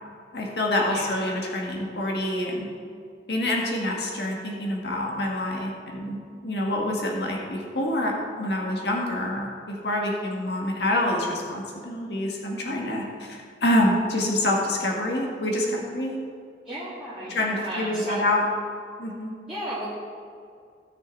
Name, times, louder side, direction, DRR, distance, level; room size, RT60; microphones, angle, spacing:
voice 1, 0.3-2.7 3.3-16.2 17.3-18.4 19.0-19.4, left 1 dB, 65° left, -1 dB, 1.7 m, -26 dB
voice 2, 0.9-1.2 16.6-18.3 19.5-19.9, right 1 dB, 5° right, -13 dB, 2.4 m, -34 dB
17.0 x 6.4 x 4.0 m, 2.3 s
head